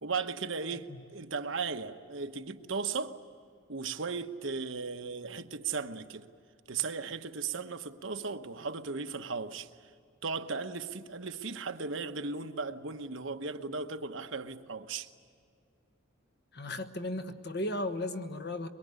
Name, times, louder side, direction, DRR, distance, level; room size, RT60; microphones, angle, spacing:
voice 1, 0.0-3.2 3.7-6.3 6.7-9.9 10.2-15.1, right 4 dB, 70° right, 1.1 m, -36 dB
voice 2, 16.5-18.7, left 1 dB, 50° left, 1.4 m, -35 dB
23.0 x 23.0 x 9.6 m
head